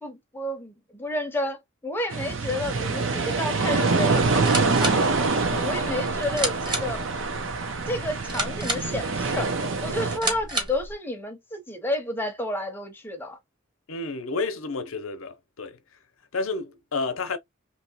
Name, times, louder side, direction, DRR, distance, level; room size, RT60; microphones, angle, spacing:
voice 1, 0.0-7.0 7.9-9.5 9.8-13.4, left 1 dB, 10° left, 0.6 m, -31 dB
sound 1, 2.1-10.2, right 3 dB, 70° right, 0.7 m, -25 dB
sound 2, 4.3-10.9, right 1 dB, 20° right, 0.8 m, -32 dB
voice 2, 13.9-15.8 16.3-17.4, left 3 dB, 80° left, 0.7 m, -30 dB
2.9 x 2.8 x 2.8 m
head